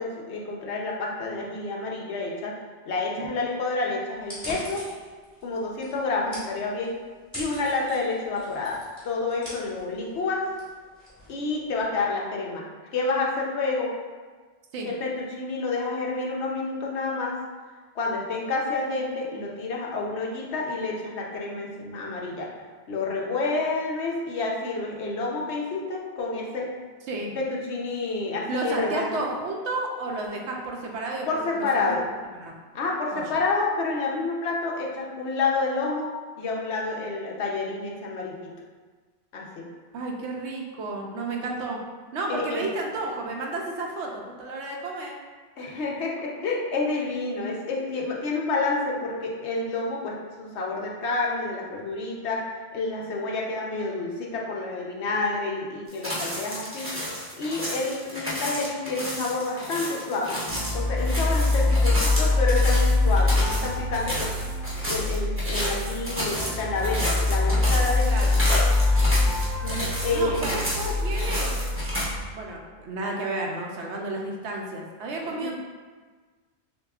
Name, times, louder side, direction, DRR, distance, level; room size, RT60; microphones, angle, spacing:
voice 1, 0.0-2.5 2.9-4.8 5.4-7.0 7.3-8.8 9.0-10.5 11.3-12.6 12.9-13.9 14.9-17.4 17.9-22.5 22.9-26.7 27.3-29.2 31.3-32.0 32.7-36.1 36.4-38.5 39.3-39.7 42.3-42.6 45.6-56.9 57.4-60.4 60.7-64.3 64.9-68.3 69.6-70.6 75.2-75.5, left 3 dB, 70° left, -2 dB, 0.9 m, -29 dB
sound 1, 4.2-11.9, equal, 15° left, 1.6 m, -43 dB
voice 2, 28.5-32.0 32.3-32.6 33.1-33.2 39.9-41.8 42.1-45.1 68.0-68.4 70.1-71.5 72.3-75.5, right 2 dB, 75° right, 0 dB, 0.9 m, -32 dB
sound 2, 55.9-72.1, equal, 15° right, 0.8 m, -31 dB
sound 3, 60.5-72.2, left 2 dB, 50° left, 0.6 m, -24 dB
6.5 x 2.3 x 2.3 m, 1.4 s
omnidirectional pair, 1.2 m